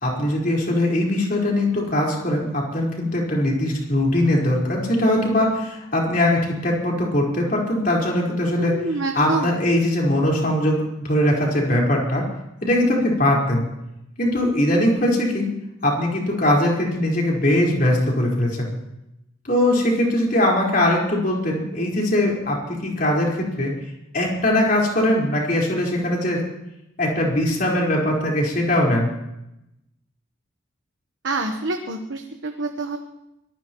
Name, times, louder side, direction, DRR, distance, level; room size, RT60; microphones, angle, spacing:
voice 1, 0.0-8.8 9.1-12.2 12.6-13.6 14.2-15.5 15.8-18.7 19.4-23.7 24.1-26.4 27.0-29.1, left 1 dB, 45° left, -3 dB, 4.7 m, -21 dB
voice 2, 8.6-9.6 31.2-33.0, right 3 dB, 75° right, 4 dB, 1.2 m, -27 dB
24.5 x 18.5 x 3.1 m, 0.89 s
head